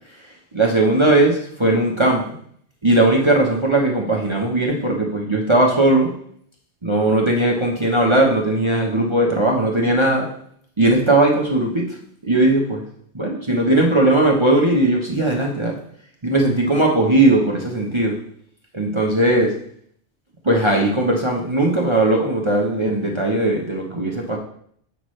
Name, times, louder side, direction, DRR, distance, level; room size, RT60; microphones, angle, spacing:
voice 1, 0.1-2.4 2.8-6.1 6.8-10.3 10.8-12.0 12.2-12.8 13.1-15.8 16.2-18.1 18.7-19.5 20.4-24.4, right 2 dB, 25° right, -1 dB, 0.9 m, -18 dB
8.0 x 6.0 x 3.2 m, 0.64 s
omnidirectional pair, 1.3 m